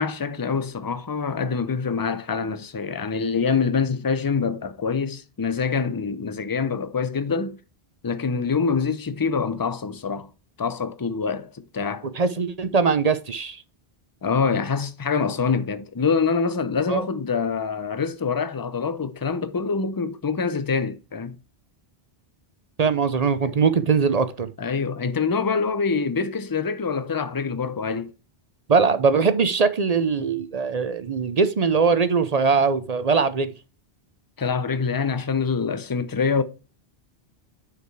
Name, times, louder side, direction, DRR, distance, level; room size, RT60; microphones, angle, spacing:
voice 1, 0.0-7.6 8.0-10.3 10.6-12.1 14.2-21.4 23.4-23.5 24.6-28.1 34.4-36.4, left 5 dB, 25° left, 0.6 m, -25 dB
voice 2, 12.1-13.6 16.9-17.1 22.8-24.5 28.7-33.5, right 5 dB, 45° right, 0.6 m, -21 dB
9.5 x 5.0 x 4.7 m
omnidirectional pair, 1.1 m